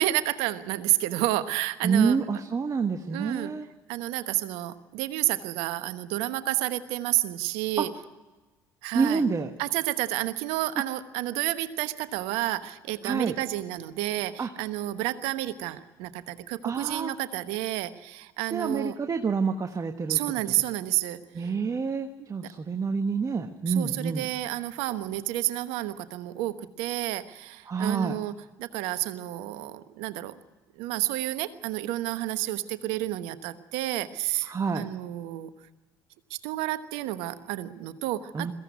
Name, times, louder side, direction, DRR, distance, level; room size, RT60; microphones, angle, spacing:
voice 1, 0.0-2.2 3.1-3.5 3.9-7.9 8.8-9.2 9.6-18.9 20.1-21.5 22.2-22.3 23.7-28.3 28.6-30.4 30.8-35.5 36.3-38.5, right 16 dB, 70° right, 12 dB, 1.2 m, -30 dB
voice 2, 1.8-3.7 7.8-7.9 8.9-9.5 13.0-13.3 14.4-14.5 16.6-17.1 18.5-20.2 20.4-20.5 21.3-24.3 27.7-28.2 34.4-34.9 38.3-38.5, right 5 dB, 35° right, 6 dB, 1.3 m, -27 dB
22.0 x 15.5 x 9.6 m, 1.2 s
hypercardioid pair, 55°, 10 cm